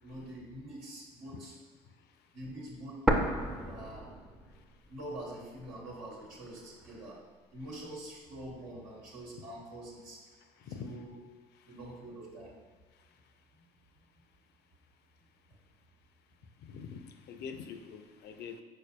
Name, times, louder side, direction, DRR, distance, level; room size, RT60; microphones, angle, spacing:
voice 1, 0.0-1.5 2.3-3.0 3.6-4.1 4.9-7.2 7.5-10.2 10.7-11.2 11.7-12.5, right 1 dB, 85° right, -5 dB, 1.2 m, -45 dB
sound 1, 3.1-5.0 5.3-5.4 6.1-7.1, right 1 dB, ahead, 0.5 m, -32 dB
voice 2, 10.6-10.9 16.7-18.6, left 6 dB, 55° left, 7 dB, 0.5 m, -44 dB
5.1 x 3.9 x 2.3 m, 1.4 s
hypercardioid pair, 70°, 20 cm